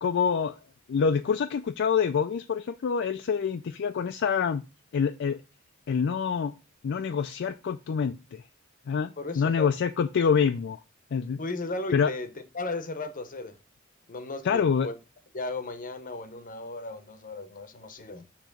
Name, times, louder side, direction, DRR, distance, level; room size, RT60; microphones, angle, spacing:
voice 1, 0.0-0.6 0.9-4.6 4.9-5.4 5.9-6.5 6.8-8.4 8.9-10.8 11.1-11.4 11.9-12.1 14.4-14.9, left 6 dB, 60° left, 0.4 m, -26 dB
voice 2, 9.2-9.7 11.4-12.3 12.5-13.5 14.1-14.9 15.3-18.2, left 2 dB, 40° left, 0.8 m, -35 dB
6.8 x 3.0 x 5.9 m
head